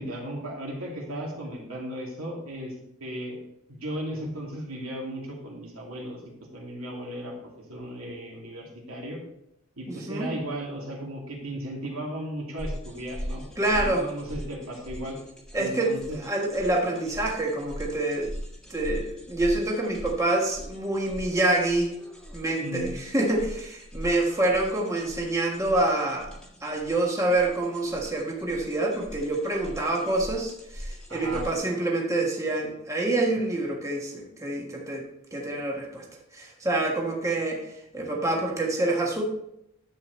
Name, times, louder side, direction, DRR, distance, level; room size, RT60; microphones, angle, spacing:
voice 1, 0.0-2.7 3.0-3.4 3.7-6.2 6.5-7.3 7.7-9.2 9.8-13.4 13.7-15.2 15.6-16.2 22.6-22.9 31.1-31.5, right 1 dB, 85° right, -2 dB, 2.6 m, -35 dB
voice 2, 9.9-10.3 13.6-14.0 15.5-18.3 18.7-21.9 22.3-26.3 26.6-35.0 35.3-36.0 36.3-39.2, right 2 dB, 15° right, -1 dB, 1.4 m, -27 dB
sound 1, 12.6-31.5, equal, 5° left, 1.6 m, -41 dB
10.5 x 7.6 x 3.2 m, 0.78 s
head